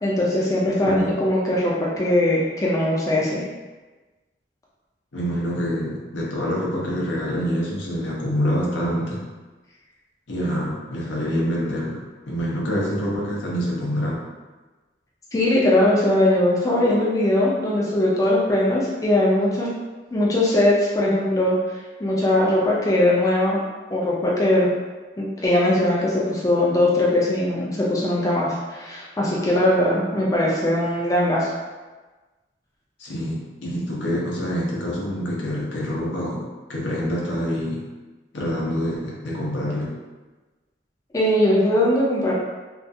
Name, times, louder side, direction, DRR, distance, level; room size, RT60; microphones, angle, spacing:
voice 1, 0.0-3.5 15.3-19.7 20.1-23.6 23.9-24.7 25.2-31.5 41.1-42.3, left 1 dB, 20° left, -6 dB, 0.3 m, -20 dB
voice 2, 0.8-1.1 5.1-9.2 10.3-12.0 12.3-14.2 33.0-37.8 38.3-39.9, equal, 85° left, -4 dB, 0.7 m, -26 dB
2.4 x 2.3 x 2.6 m, 1.2 s
head